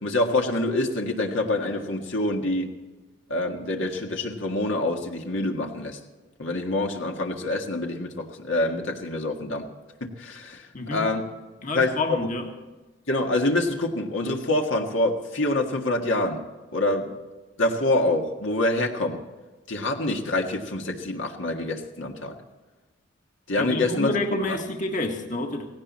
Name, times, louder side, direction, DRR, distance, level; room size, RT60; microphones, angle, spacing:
voice 1, 0.0-2.7 3.3-6.0 6.4-9.7 10.0-11.3 11.7-12.3 13.1-16.4 16.7-17.1 17.6-19.2 19.7-22.4 23.5-24.2 24.5-24.6, left 2 dB, 70° left, 2 dB, 1.7 m, -26 dB
voice 2, 10.7-11.1 11.6-12.5 23.6-25.7, left 2 dB, 40° left, 3 dB, 1.7 m, -28 dB
17.5 x 17.0 x 4.3 m, 1.2 s
head